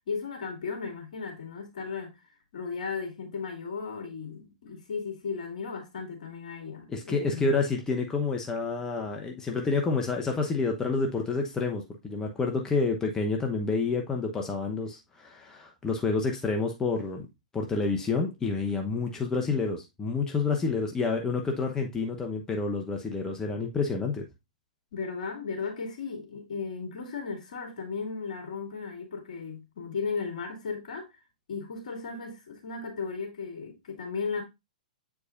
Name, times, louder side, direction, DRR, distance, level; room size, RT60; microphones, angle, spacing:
voice 1, 0.1-2.2 2.5-7.5 24.9-31.1 31.5-34.4, left 5 dB, 65° left, 2.4 m, -35 dB
voice 2, 6.9-17.3 17.5-24.3, left 4 dB, 15° left, 0.9 m, -29 dB
8.1 x 4.7 x 2.5 m
hypercardioid pair, 115°, 4 cm